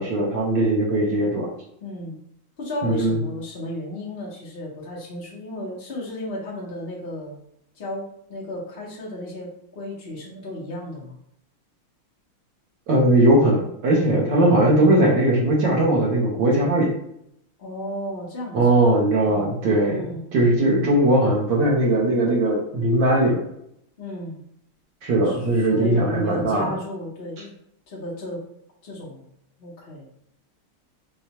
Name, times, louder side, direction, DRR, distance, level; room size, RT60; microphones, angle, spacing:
voice 1, 0.0-1.5 2.8-3.2 12.9-16.9 18.5-20.0 20.3-23.4 25.0-26.7, right 1 dB, 65° right, -3 dB, 1.5 m, -19 dB
voice 2, 1.8-2.2 2.6-7.4 7.7-11.2 17.6-18.9 19.9-20.2 24.0-24.4 25.2-27.5 27.9-28.5 28.8-29.2 29.6-30.1, left 1 dB, 60° left, -5 dB, 0.6 m, -34 dB
4.8 x 2.2 x 2.8 m, 0.75 s
omnidirectional pair, 2.3 m